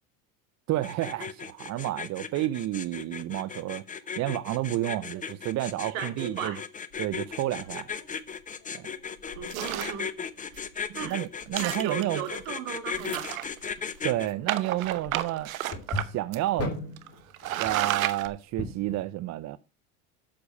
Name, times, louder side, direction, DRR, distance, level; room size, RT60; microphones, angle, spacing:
voice 1, 0.7-3.8 4.2-6.6 7.0-7.9 8.7-8.9 11.0-12.2 14.0-15.5 15.9-16.8 17.6-19.6, right 15 dB, 45° right, 0.7 m, -30 dB
sound 1, 0.8-14.3, left 6 dB, 20° left, 0.9 m, -36 dB
voice 2, 5.8-6.6 9.3-10.1 10.5-10.7 10.9-11.2 11.6-13.4, right 9 dB, 65° right, 2.4 m, -36 dB
sound 2, 6.9-19.0, left 2 dB, 35° left, 3.4 m, -42 dB
sound 3, 9.5-10.0 10.6-10.7 11.0-11.1 11.5-12.3 13.0-13.8 14.5-16.1 16.3-16.4 17.0-17.1 17.3-18.3, right 13 dB, 85° right, 1.0 m, -31 dB
8.6 x 6.8 x 5.4 m
hypercardioid pair, 90°, 40 cm